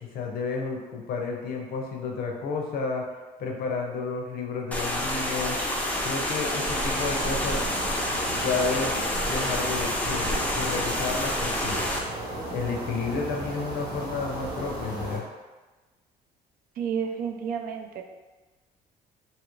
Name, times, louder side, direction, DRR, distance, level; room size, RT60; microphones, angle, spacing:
voice 1, 0.1-3.1 3.4-5.6 6.0-7.6 8.3-8.9 9.3-11.8 12.5-15.3, left 4 dB, 65° left, 1 dB, 0.6 m, -31 dB
sound 1, 4.7-12.0, left 1 dB, 10° left, 0.4 m, -28 dB
sound 2, 6.7-15.2, right 1 dB, 75° right, 1.0 m, -35 dB
voice 2, 16.8-18.0, right 7 dB, 60° right, 4 dB, 0.4 m, -30 dB
2.8 x 2.5 x 3.0 m, 1.2 s
cardioid pair, 110°, 17 cm